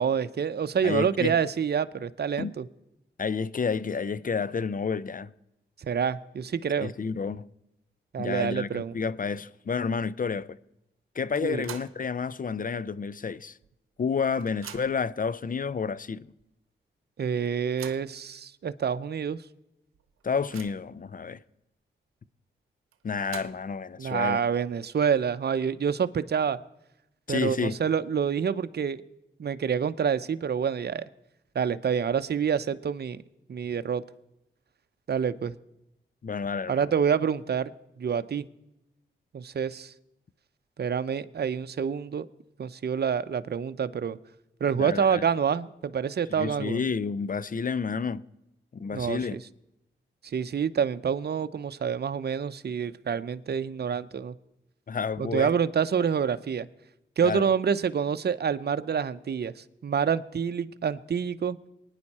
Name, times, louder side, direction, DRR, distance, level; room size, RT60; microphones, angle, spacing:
voice 1, 0.0-2.6 5.8-6.9 8.1-8.9 11.4-11.7 17.2-19.4 24.0-26.6 27.3-29.0 29.4-31.0 31.5-33.2 33.5-34.0 35.1-35.5 36.7-37.7 38.0-38.4 39.3-39.9 40.8-42.2 42.6-44.2 44.6-46.8 48.9-49.4 50.3-54.3 55.3-56.7 57.2-59.5 59.8-61.6, right 7 dB, 50° right, 0.7 m, -27 dB
voice 2, 0.8-1.4 2.4-2.5 3.2-5.3 6.8-7.5 8.2-10.6 11.1-13.6 14.0-16.3 20.2-21.4 23.0-24.4 27.3-27.8 36.2-36.9 44.8-45.2 46.3-48.2 48.7-49.4 54.9-55.5 57.2-57.4, left 5 dB, 40° left, 0.6 m, -30 dB
sound 1, 11.3-12.1 12.5-12.6 13.6-13.7 14.0-15.1 15.9-16.0 16.4-16.5 17.4-18.2 18.9-19.0 19.3-19.4 19.9-21.0 22.9-23.8, right 10 dB, 85° right, 0.9 m, -45 dB
23.0 x 9.9 x 4.3 m
supercardioid pair, 40°, 21 cm